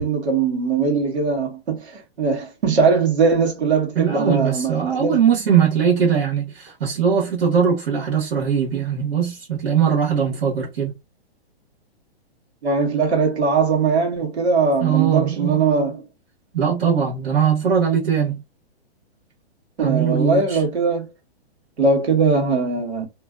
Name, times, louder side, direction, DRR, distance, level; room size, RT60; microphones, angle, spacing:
voice 1, 0.0-5.2 12.6-16.0 19.8-21.1 21.8-23.1, right 4 dB, 85° right, 1.2 m, -20 dB
voice 2, 3.9-11.0 14.8-15.6 16.5-18.4 19.8-20.6, right 7 dB, 65° right, 1.3 m, -20 dB
2.5 x 2.3 x 2.3 m
hypercardioid pair, 140°, 32 cm